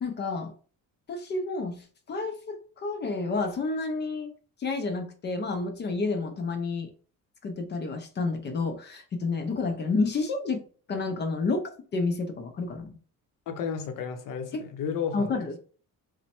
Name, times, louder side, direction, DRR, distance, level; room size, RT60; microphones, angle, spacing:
voice 1, 0.0-0.5 1.1-4.3 4.6-6.9 7.4-10.6 10.9-11.6 11.9-13.0 14.5-14.6 15.1-15.6, left 3 dB, 35° left, 0.4 m, -30 dB
voice 2, 13.5-15.3, left 7 dB, 70° left, 0.6 m, -32 dB
3.1 x 2.1 x 4.2 m
cardioid pair, 180°, 34 cm